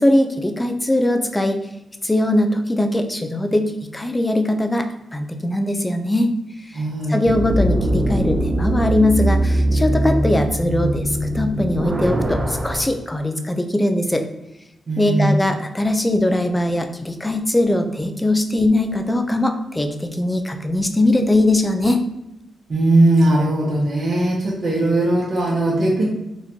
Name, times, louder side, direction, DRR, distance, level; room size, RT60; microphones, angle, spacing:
voice 1, 0.0-1.6 2.0-6.3 7.1-14.2 15.0-22.0, left 1 dB, 20° left, 6 dB, 0.5 m, -20 dB
voice 2, 6.7-7.2 14.9-15.4 22.7-26.1, right 1 dB, 55° right, -4 dB, 1.0 m, -18 dB
sound 1, 7.3-12.8, right 1 dB, 35° right, 0.6 m, -21 dB
4.0 x 3.0 x 2.8 m, 0.90 s
cardioid pair, 55°, 0 cm